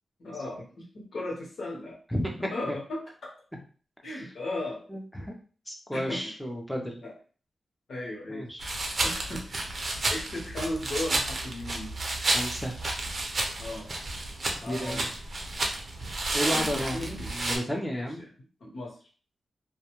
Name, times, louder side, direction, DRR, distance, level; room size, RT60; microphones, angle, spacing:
voice 1, 0.2-2.0 2.4-3.3 4.0-4.9 5.9-6.3 7.0-7.1 7.9-8.4 9.0-9.7 10.1-11.9 13.6-13.9 14.6-15.1 16.4-17.3 17.9-18.3 18.6-19.0, left 1 dB, 65° left, -3 dB, 1.1 m, -36 dB
voice 2, 4.9-5.3 5.7-7.0 8.3-8.7 12.2-12.8 14.7-15.1 16.3-18.2, equal, 5° left, 1 dB, 0.6 m, -32 dB
sound 1, 8.6-17.6, right 2 dB, 45° right, 0.5 m, -31 dB
2.3 x 2.2 x 3.0 m, 0.39 s
wide cardioid pair, 95°, 0 cm